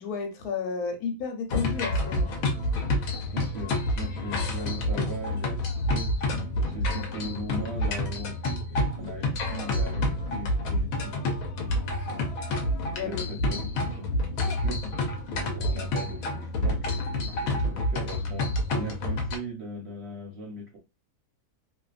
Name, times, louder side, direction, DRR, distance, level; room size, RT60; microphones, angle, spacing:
voice 1, 0.0-2.3 13.0-13.2, left 5 dB, 90° left, 1.2 m, -32 dB
sound 1, 1.5-19.4, left 1 dB, 70° left, 1.0 m, -28 dB
voice 2, 3.2-11.2 11.6-12.4 13.0-14.1 14.4-20.8, right 1 dB, 55° right, 0.8 m, -39 dB
2.6 x 2.2 x 2.4 m
omnidirectional pair, 1.6 m